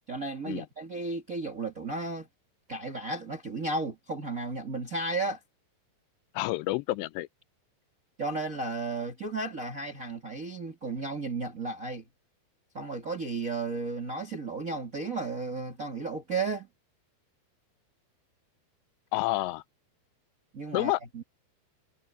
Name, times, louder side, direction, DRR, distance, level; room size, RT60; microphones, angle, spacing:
voice 1, 0.1-2.3 2.7-5.4 8.2-12.0 12.7-16.7 20.5-21.2, right 3 dB, 40° right, 1.2 m, -34 dB
voice 2, 6.3-7.3 19.1-19.6 20.7-21.0, left 19 dB, 90° left, 2.9 m, -29 dB
omnidirectional pair, 4.8 m